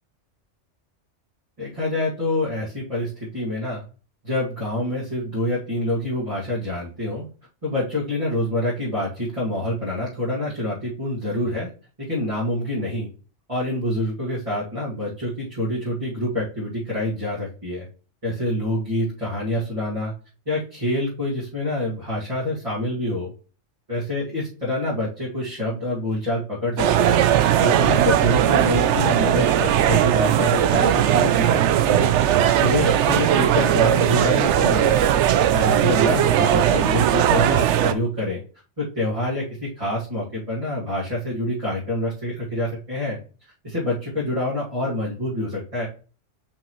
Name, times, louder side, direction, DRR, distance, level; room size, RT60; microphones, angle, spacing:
voice 1, 1.6-3.8 4.2-7.3 7.6-11.7 12.0-13.1 13.5-17.9 18.2-20.1 20.5-23.3 23.9-27.2 27.6-32.1 32.6-35.0 35.5-38.4 38.8-43.2 43.6-45.9, left 1 dB, 30° right, -8 dB, 2.3 m, -26 dB
sound 1, 26.8-37.9, right 11 dB, 75° right, 0.9 m, -18 dB
5.8 x 5.3 x 3.1 m, 0.37 s
omnidirectional pair, 1.2 m